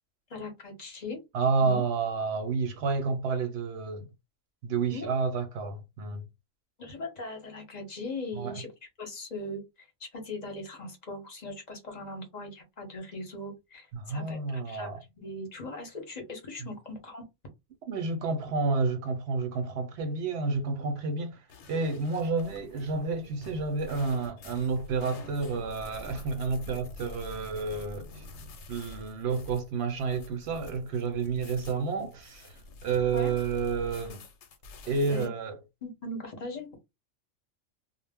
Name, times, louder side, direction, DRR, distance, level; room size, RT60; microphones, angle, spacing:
voice 1, 0.3-1.2 1.6-1.8 4.9-5.1 6.8-8.7 9.0-9.6 10.0-14.9 15.2-17.2 33.1-33.3 35.1-35.3 35.8-36.7, left 2 dB, 40° left, 0.8 m, -39 dB
voice 2, 1.3-4.1 4.6-6.3 8.3-8.6 13.9-15.0 16.6-16.7 17.8-28.2 28.7-32.6 32.8-34.2 34.9-35.6, right 4 dB, 65° right, 0.7 m, -30 dB
sound 1, 21.5-35.3, left 2 dB, 70° left, 0.9 m, -47 dB
2.1 x 2.0 x 3.4 m
omnidirectional pair, 1.3 m